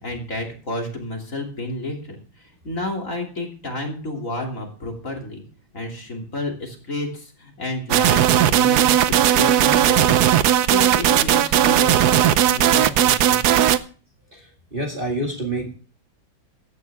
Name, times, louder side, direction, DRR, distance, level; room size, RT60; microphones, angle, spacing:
voice 1, 0.0-5.4 5.7-10.2 10.6-13.6, left 1 dB, 40° left, 1 dB, 3.2 m, -31 dB
sound 1, 7.9-13.8, right 11 dB, 65° right, 1.0 m, -17 dB
voice 2, 14.3-15.7, right 1 dB, 25° right, 0 dB, 2.2 m, -28 dB
15.0 x 11.0 x 3.5 m, 0.39 s
omnidirectional pair, 2.2 m